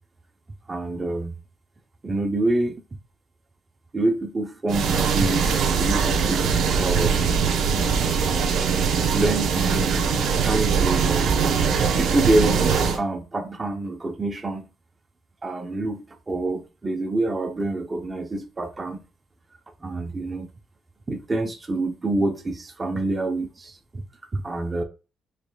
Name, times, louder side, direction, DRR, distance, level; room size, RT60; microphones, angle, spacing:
voice 1, 0.7-1.3 2.0-2.8 3.9-7.2 9.1-11.4 12.0-14.7 15.4-19.0 19.8-20.5 21.1-24.0 24.3-24.8, right 2 dB, 25° right, 0.6 m, -26 dB
sound 1, 4.7-13.0, right 6 dB, 80° right, 0.7 m, -22 dB
4.7 x 3.2 x 2.2 m
cardioid pair, 105°, 0 cm